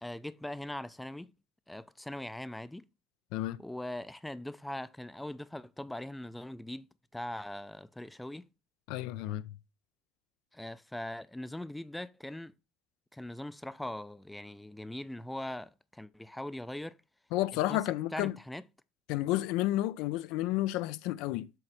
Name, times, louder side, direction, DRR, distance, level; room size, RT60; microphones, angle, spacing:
voice 1, 0.0-1.3 1.7-2.9 3.6-6.9 7.1-8.5 10.5-12.6 13.1-17.0 17.5-17.8 18.1-18.6, left 1 dB, 5° left, 0.4 m, -41 dB
voice 2, 3.3-3.6 8.9-9.4 17.3-18.3 19.1-21.5, left 15 dB, 75° left, 0.4 m, -31 dB
7.7 x 3.2 x 6.1 m
supercardioid pair, 110°, 0 cm